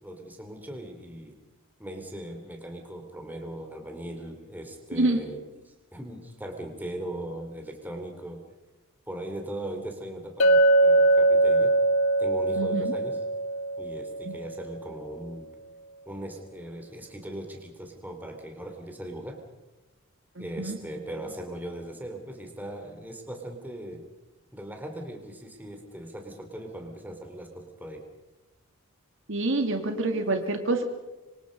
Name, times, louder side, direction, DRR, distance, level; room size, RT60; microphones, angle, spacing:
voice 1, 0.0-1.4 1.8-8.4 9.1-11.7 12.2-13.2 13.8-15.5 16.0-19.4 20.4-24.0 24.5-28.1 29.9-30.3, right 1 dB, 10° right, 3 dB, 3.3 m, -39 dB
Chink clink, 10.4-14.6, right 2 dB, 70° left, 1.1 m, -22 dB
voice 2, 12.6-12.9 14.2-14.3 20.4-20.8 29.3-30.8, right 2 dB, 60° right, 5 dB, 2.4 m, -27 dB
26.0 x 25.5 x 5.3 m, 1.1 s
head